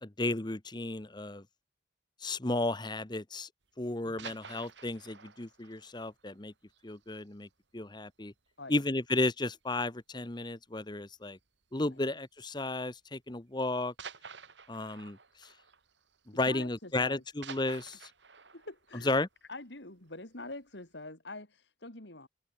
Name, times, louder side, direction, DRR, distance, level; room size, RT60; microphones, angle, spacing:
voice 1, 0.0-1.4 2.2-3.5 3.8-6.5 6.8-7.5 7.7-8.3 8.7-11.4 11.7-13.9 14.7-15.2 16.4-18.0 19.1-19.3, left 2 dB, 25° left, 1.0 m, -33 dB
sound 1, 3.9-7.5 7.8-7.9 8.3-8.5 8.8-8.9 9.8-10.2 11.4-11.6 12.5-12.6 14.0-16.8 17.0-20.2 20.6-20.7, right 6 dB, 75° right, 3.3 m, -51 dB
voice 2, 16.5-17.2 18.5-19.2 19.5-22.3, left 2 dB, 70° left, 3.9 m, -45 dB
head